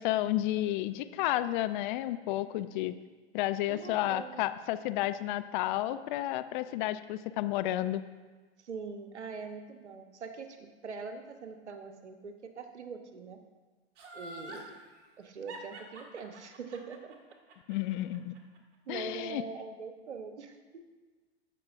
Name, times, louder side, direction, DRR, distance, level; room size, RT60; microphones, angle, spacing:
voice 1, 0.0-3.0 3.3-8.0 17.7-18.3 18.9-19.4, left 14 dB, 45° left, 12 dB, 0.5 m, -31 dB
voice 2, 3.7-4.4 8.6-13.4 14.1-14.7 15.2-17.1 18.9-20.8, right 5 dB, 85° right, 7 dB, 1.0 m, -43 dB
Laughter, 14.0-14.7 15.5-18.6 18.9-19.0, right 1 dB, 45° right, 2.0 m, -47 dB
15.0 x 6.0 x 2.6 m, 1.3 s
hypercardioid pair, 95°, 33 cm